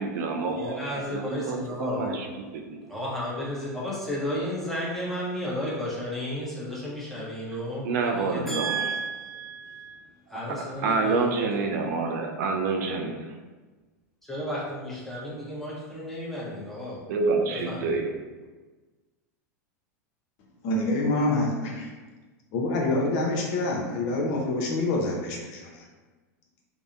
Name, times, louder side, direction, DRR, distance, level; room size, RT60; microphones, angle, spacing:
voice 1, 0.0-2.3 2.5-2.8 7.8-8.8 10.8-13.4 17.1-18.1, right 4 dB, 70° right, 3 dB, 0.3 m, -27 dB
voice 2, 0.6-2.2 2.8-11.5 14.2-17.1 17.5-18.0, equal, 5° left, -7 dB, 0.8 m, -33 dB
voice 3, 20.6-21.9 22.5-25.8, left 2 dB, 55° left, -1 dB, 0.6 m, -26 dB
2.6 x 2.0 x 2.5 m, 1.3 s
hypercardioid pair, 100°, 9 cm